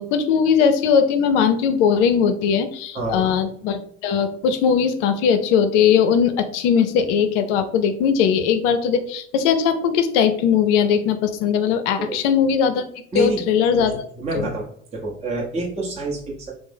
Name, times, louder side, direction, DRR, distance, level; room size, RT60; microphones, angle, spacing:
voice 1, 0.0-12.8 13.1-13.9 14.3-14.5, left 7 dB, 65° left, 10 dB, 0.5 m, -19 dB
voice 2, 2.9-3.3 12.0-12.2 13.1-13.4 13.7-13.9 14.2-16.5, right 2 dB, 15° right, -3 dB, 0.7 m, -27 dB
3.3 x 2.0 x 3.3 m, 0.64 s
hypercardioid pair, 65°, 39 cm